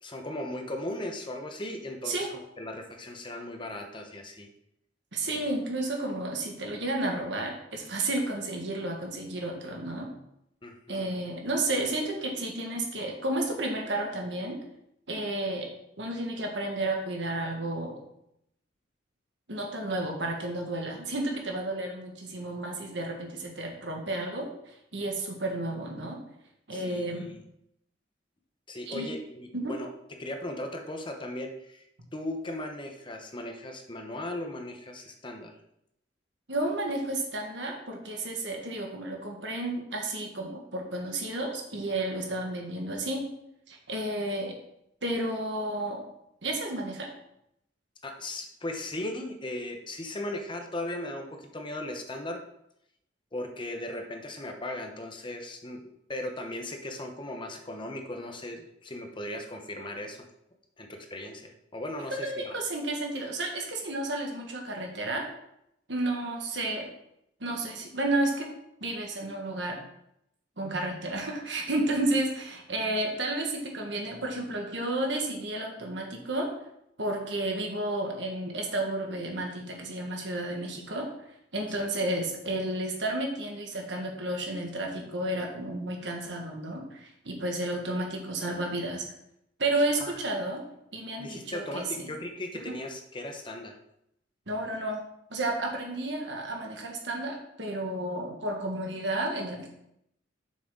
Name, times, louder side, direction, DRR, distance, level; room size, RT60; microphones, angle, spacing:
voice 1, 0.0-4.5 5.3-5.4 10.6-11.1 26.7-27.4 28.7-29.9 30.2-31.8 32.1-35.5 48.0-52.4 53.3-55.8 56.1-60.2 60.8-62.6 81.8-81.9 90.0-90.2 91.2-93.7, left 1 dB, 25° left, 4 dB, 0.9 m, -37 dB
voice 2, 5.1-10.1 10.9-14.6 15.1-15.7 16.0-18.0 19.5-26.2 26.7-27.3 28.9-29.1 29.5-29.7 36.5-43.3 43.7-44.5 45.0-46.0 46.4-47.1 62.1-65.2 65.9-66.9 67.4-68.5 68.8-69.8 70.6-76.5 77.0-81.1 81.5-89.0 89.6-90.6 90.9-92.1 92.6-92.7 94.5-95.0 95.3-99.7, right 1 dB, 70° right, 1 dB, 1.7 m, -32 dB
7.4 x 6.3 x 3.9 m, 0.78 s
head